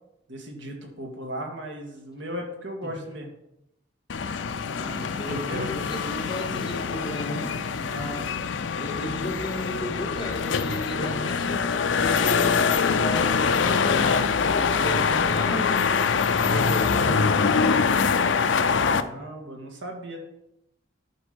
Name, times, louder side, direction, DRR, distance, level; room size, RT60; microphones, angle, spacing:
voice 1, 0.3-3.3 5.3-5.7 7.8-8.3 18.7-20.2, equal, 85° right, 2 dB, 1.9 m, -36 dB
sound 1, 4.1-19.0, left 5 dB, 80° left, 0.5 m, -24 dB
voice 2, 4.7-7.6 8.8-15.8 16.4-17.9, equal, 25° left, -1 dB, 2.0 m, -34 dB
11.0 x 5.1 x 5.2 m, 0.84 s
head